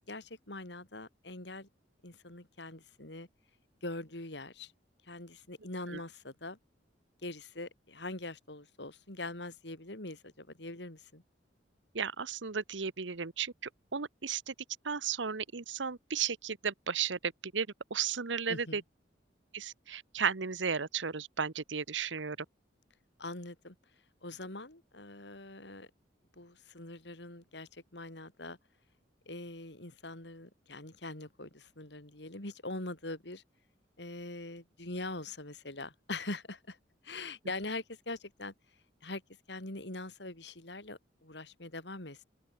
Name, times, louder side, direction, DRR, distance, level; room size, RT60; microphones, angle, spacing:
voice 1, 0.1-1.7 2.0-3.3 3.8-4.7 5.1-6.6 7.2-11.2 18.5-18.8 23.2-23.8 24.2-25.9 26.4-28.6 29.3-33.4 34.0-36.8 37.0-38.5 39.0-39.2 39.5-42.2, left 2 dB, 65° left, 4.1 m, -43 dB
voice 2, 11.9-14.5 14.8-18.8 19.5-22.4, right 6 dB, 90° right, 1.1 m, -34 dB
open air
head